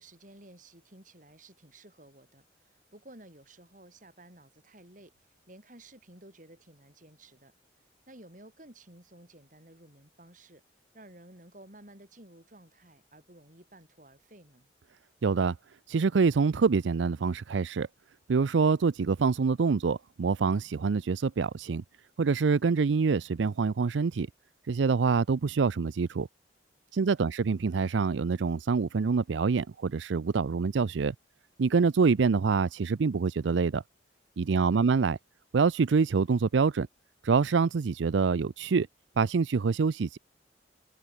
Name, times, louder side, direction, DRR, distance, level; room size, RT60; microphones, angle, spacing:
voice 1, 0.0-5.1 5.5-7.5 8.1-10.6 10.9-14.7 26.9-27.3 34.4-34.9, right 1 dB, 45° right, 5.8 m, -54 dB
voice 2, 15.2-15.6 15.9-17.9 18.3-21.8 22.2-24.3 24.7-26.3 26.9-31.1 31.6-33.8 34.4-35.2 35.5-36.9 37.2-38.9 39.2-40.2, right 5 dB, 80° right, 0.5 m, -26 dB
open air
head